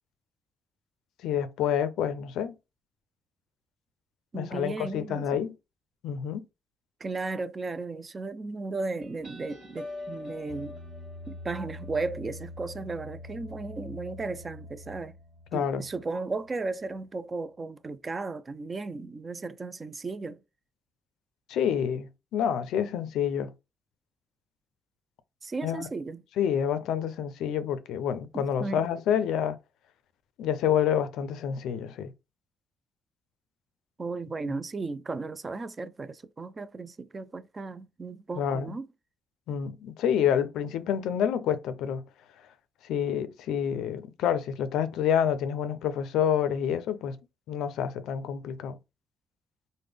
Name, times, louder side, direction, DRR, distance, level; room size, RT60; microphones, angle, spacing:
voice 1, 1.2-2.5 4.3-5.5 6.0-6.4 15.5-15.8 21.5-23.5 25.6-25.9 26.4-29.6 30.4-32.1 34.5-34.6 38.4-38.7 39.5-42.0 42.8-47.2 47.5-48.8, left 8 dB, 85° left, 0.4 m, -28 dB
voice 2, 4.3-5.4 7.0-10.8 11.3-15.2 15.5-20.4 25.4-26.2 28.3-28.9 34.0-38.9, right 3 dB, 30° right, 0.3 m, -35 dB
sound 1, 9.0-16.2, left 2 dB, 50° right, 1.8 m, -43 dB
3.4 x 2.1 x 3.3 m
cardioid pair, 90°, 0 cm